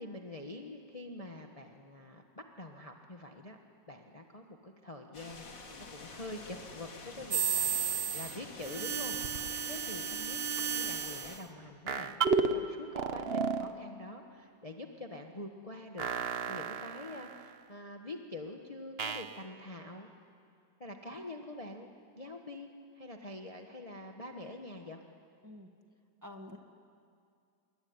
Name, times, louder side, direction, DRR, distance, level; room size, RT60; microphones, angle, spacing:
voice 1, 0.0-3.6 3.9-5.7 5.9-16.1 16.5-20.1 20.8-21.9 22.1-25.0, left 1 dB, 20° left, 3 dB, 1.3 m, -46 dB
sound 1, 5.1-11.4, left 3 dB, 80° left, 2.9 m, -48 dB
sound 2, 7.3-8.4 8.6-11.4 11.9-12.6 12.9-13.7 16.0-17.5 19.0-19.3, right 6 dB, 40° right, 1.0 m, -33 dB
voice 2, 26.2-26.6, left 1 dB, 10° right, 3 dB, 1.6 m, -47 dB
27.0 x 22.5 x 9.7 m, 2.3 s
omnidirectional pair, 2.0 m